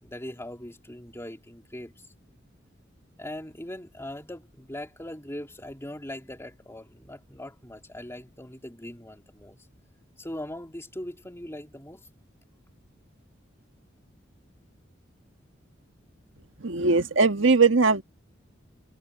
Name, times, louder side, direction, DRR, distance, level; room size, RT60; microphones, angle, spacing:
voice 1, 0.0-1.9 3.2-9.6 10.2-12.1, left 1 dB, 15° left, 3.6 m, -40 dB
voice 2, 16.6-18.0, right 4 dB, 80° right, 1.5 m, -20 dB
head